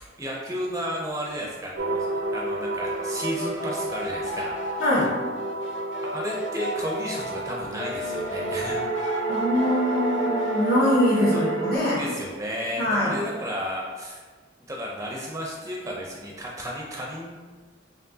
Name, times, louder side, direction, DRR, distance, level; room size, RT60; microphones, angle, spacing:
voice 1, 0.2-2.1 2.3-4.8 6.1-8.8 11.3-11.4 12.0-14.2 14.7-17.3, equal, 15° right, -2 dB, 0.4 m, -33 dB
sound 1, 1.8-11.8, right 2 dB, 80° right, 0.5 m, -30 dB
sound 2, 2.8-7.4 7.8-11.0, left 1 dB, 65° left, 0.6 m, -35 dB
voice 2, 4.8-5.2 9.3-12.0 12.8-13.2, left 1 dB, 50° left, -5 dB, 1.3 m, -23 dB
4.5 x 3.3 x 2.7 m, 1.5 s
head